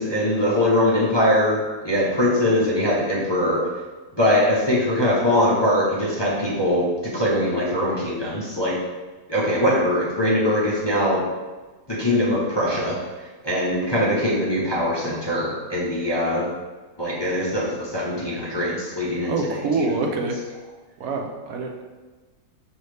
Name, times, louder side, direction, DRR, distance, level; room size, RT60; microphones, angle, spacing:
voice 1, 0.0-3.6 4.2-8.8 9.3-11.2 11.9-13.0 13.4-16.5 17.0-19.9, left 1 dB, 30° left, -8 dB, 0.4 m, -22 dB
voice 2, 19.2-20.4 21.0-21.8, right 4 dB, 70° right, 2 dB, 1.0 m, -26 dB
5.5 x 2.7 x 3.2 m, 1.3 s
omnidirectional pair, 1.7 m